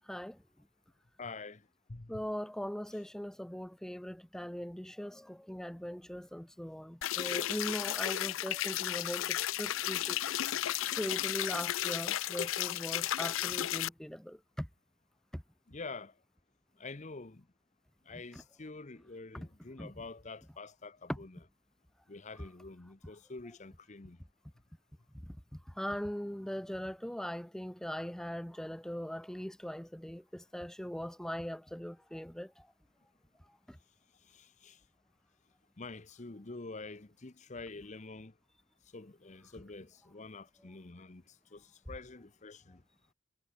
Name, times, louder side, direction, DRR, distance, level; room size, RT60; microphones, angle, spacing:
voice 1, 0.1-0.4 2.1-10.2 11.0-14.7 15.3-15.4 18.1-18.4 19.3-19.5 19.8-19.9 21.1-21.2 25.2-32.7 33.7-33.8, equal, 5° left, 0.5 m, -40 dB
voice 2, 1.2-1.6 1.9-2.2 15.7-16.1 16.8-17.4 18.1-21.4 22.1-24.2 34.3-34.8 35.8-38.3 38.9-41.2 41.5-42.8, left 3 dB, 35° left, 0.9 m, -47 dB
sound 1, 7.0-13.9, left 13 dB, 85° left, 0.5 m, -34 dB
head